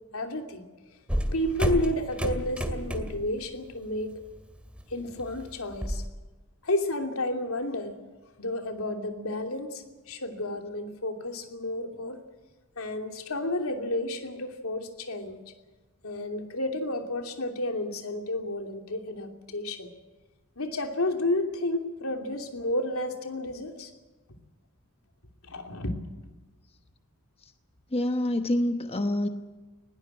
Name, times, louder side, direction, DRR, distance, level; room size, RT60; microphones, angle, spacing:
voice 1, 0.1-0.6 1.3-4.2 4.9-6.0 6.6-8.0 8.4-12.2 12.8-15.4 16.0-19.9 20.6-23.9 24.3-24.4 25.4-26.0, left 1 dB, 80° left, 4 dB, 2.9 m, -31 dB
sound 1, 1.1-3.3 3.7-4.0 4.4-6.1, equal, 5° right, 2.2 m, -30 dB
voice 2, 27.9-29.3, left 1 dB, 30° left, 7 dB, 1.1 m, -26 dB
20.0 x 18.0 x 9.0 m, 1.2 s
head